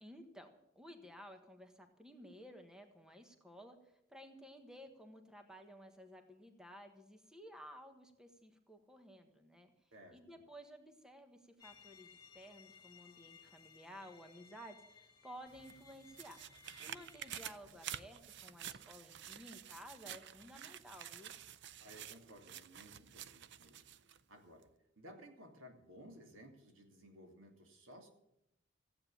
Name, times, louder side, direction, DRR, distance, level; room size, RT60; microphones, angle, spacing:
voice 1, 0.0-3.8 4.1-9.7 10.1-16.4 16.8-21.3, equal, 5° right, 5 dB, 1.4 m, -55 dB
voice 2, 9.9-10.4 21.8-23.8 24.3-24.7 25.0-28.1, equal, 90° right, 4 dB, 2.9 m, -57 dB
sound 1, 11.6-17.4, left 6 dB, 20° left, 1.9 m, -61 dB
sound 2, 15.5-24.2 24.6-24.7, right 10 dB, 60° right, 0.6 m, -50 dB
15.5 x 8.9 x 8.7 m, 0.80 s
head